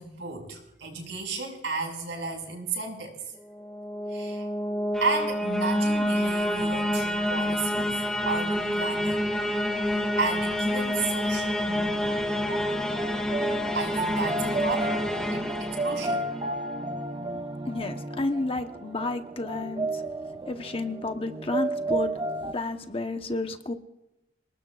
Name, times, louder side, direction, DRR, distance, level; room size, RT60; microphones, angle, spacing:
voice 1, 0.0-3.2 4.1-4.5 5.0-9.3 9.8-12.2 13.7-16.3, right 4 dB, 70° right, 2 dB, 6.0 m, -33 dB
sound 1, 3.5-16.5, left 1 dB, 5° left, 2.0 m, -28 dB
sound 2, 11.7-22.5, right 2 dB, 25° right, 0.8 m, -32 dB
voice 2, 17.7-20.0 20.5-22.1 22.5-23.7, left 2 dB, 30° left, 6 dB, 1.1 m, -31 dB
28.0 x 19.5 x 2.5 m, 0.90 s
head